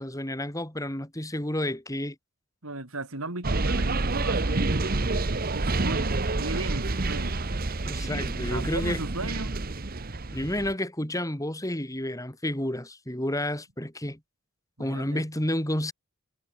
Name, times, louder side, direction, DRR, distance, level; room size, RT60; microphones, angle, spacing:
voice 1, 0.0-2.2 7.8-9.0 10.3-14.2 14.8-15.9, left 1 dB, 15° left, 4.3 m, -30 dB
voice 2, 2.6-4.8 5.5-7.5 8.5-9.6 14.8-15.2, right 2 dB, 80° right, 3.7 m, -36 dB
sound 1, 3.4-10.7, right 2 dB, 45° right, 1.1 m, -28 dB
head